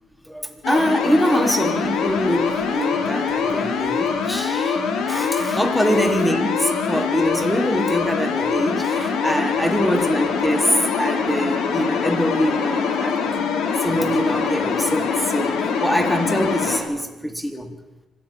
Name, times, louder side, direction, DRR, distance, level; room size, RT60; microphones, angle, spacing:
voice 1, 0.3-4.8 5.1-13.3 13.8-17.8, equal, ahead, 7 dB, 3.8 m, -23 dB
sound 1, 0.6-16.8, left 6 dB, 80° left, 4.3 m, -23 dB
25.5 x 17.5 x 9.2 m, 1.1 s
cardioid pair, 90°, 0 cm